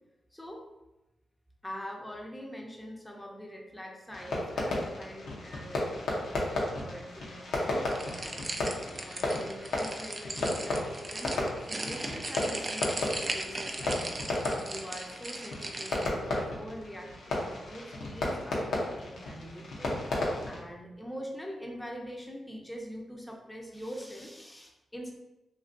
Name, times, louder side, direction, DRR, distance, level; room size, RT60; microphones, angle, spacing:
voice 1, 0.3-0.7 1.6-14.1 14.7-20.0 20.5-25.1, equal, 15° left, 0 dB, 0.6 m, -44 dB
Fireworks, 4.1-20.6, left 2 dB, 80° left, 0.7 m, -34 dB
sound 1, 7.9-16.1, right 2 dB, 40° right, 0.4 m, -38 dB
2.7 x 2.5 x 2.5 m, 0.98 s
supercardioid pair, 50°, 0 cm